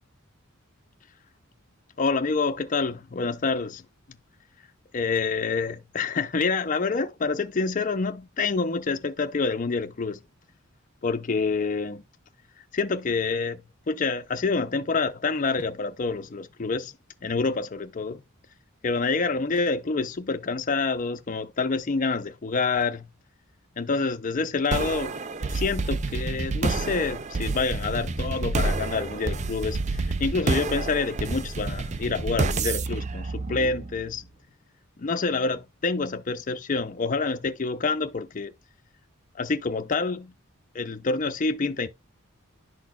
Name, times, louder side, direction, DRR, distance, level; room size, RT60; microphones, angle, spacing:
voice 1, 2.0-3.8 4.1-4.2 4.9-10.2 11.0-12.0 12.7-16.9 17.2-18.2 18.8-23.1 23.8-25.2 25.5-34.2 35.0-38.5 39.3-40.3 40.7-41.9, left 4 dB, 40° left, 0.5 m, -27 dB
sound 1, 24.7-34.1, right 3 dB, 35° right, 0.5 m, -29 dB
11.0 x 4.2 x 2.3 m
head